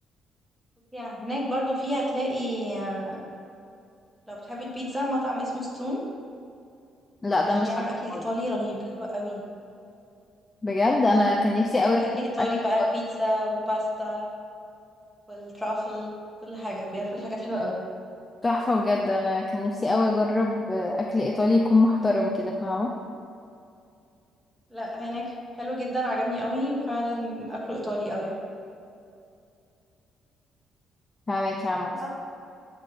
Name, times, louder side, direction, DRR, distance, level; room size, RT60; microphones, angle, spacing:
voice 1, 0.9-3.2 4.3-6.0 7.5-9.4 11.8-14.2 15.3-16.1 16.4-17.8 24.7-28.4 31.9-32.1, equal, 5° right, -4 dB, 1.2 m, -30 dB
voice 2, 7.2-7.7 8.1-8.2 10.6-12.0 12.4-12.5 18.4-22.9 31.3-31.9, left 2 dB, 15° left, -1 dB, 0.4 m, -23 dB
8.3 x 3.4 x 3.8 m, 2.5 s
cardioid pair, 135°, 0 cm